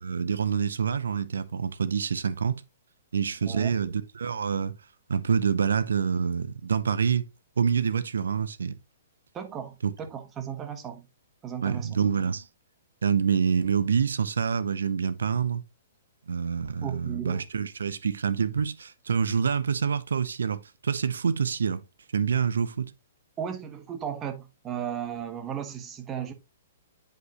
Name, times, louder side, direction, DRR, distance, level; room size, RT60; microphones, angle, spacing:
voice 1, 0.0-2.6 3.1-4.8 5.1-7.2 7.6-8.7 9.8-9.9 11.6-12.5 13.0-15.6 16.3-21.8 22.1-22.9, right 6 dB, 70° right, 0.6 m, -26 dB
voice 2, 9.3-11.1 11.4-12.0 16.8-17.4 23.4-26.3, right 8 dB, 20° right, 1.2 m, -35 dB
7.7 x 5.2 x 3.0 m
figure-of-eight pair, 115°, 0 cm